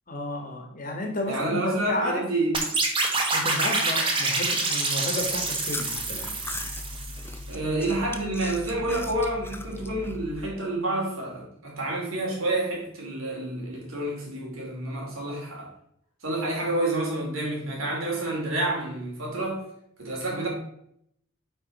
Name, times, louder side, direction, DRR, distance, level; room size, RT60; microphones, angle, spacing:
voice 1, 0.1-2.2 3.3-6.4 20.3-20.4, left 2 dB, 40° left, 3 dB, 1.4 m, -32 dB
voice 2, 1.3-2.5 7.5-15.7 16.2-19.6 20.0-20.5, right 2 dB, 80° right, -2 dB, 2.9 m, -29 dB
sound 1, 2.5-7.4, right 3 dB, 25° right, 1.2 m, -27 dB
Chewing mastication, 5.2-10.5, left 2 dB, 10° left, 0.5 m, -39 dB
8.9 x 4.4 x 4.1 m, 0.72 s
head